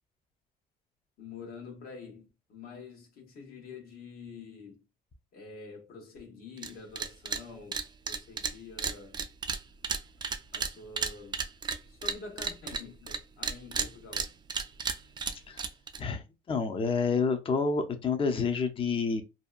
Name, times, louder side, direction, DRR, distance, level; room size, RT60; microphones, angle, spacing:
voice 1, 1.2-4.8 5.3-9.2 10.5-11.4 11.9-14.3, left 4 dB, 65° left, 1.1 m, -47 dB
sound 1, 6.6-6.7 7.0-7.4 7.7-13.2 13.4-16.0, right 5 dB, 25° right, 0.3 m, -33 dB
voice 2, 16.0-19.2, left 5 dB, 30° left, 0.5 m, -29 dB
2.7 x 2.2 x 2.4 m
cardioid pair, 110°, 17 cm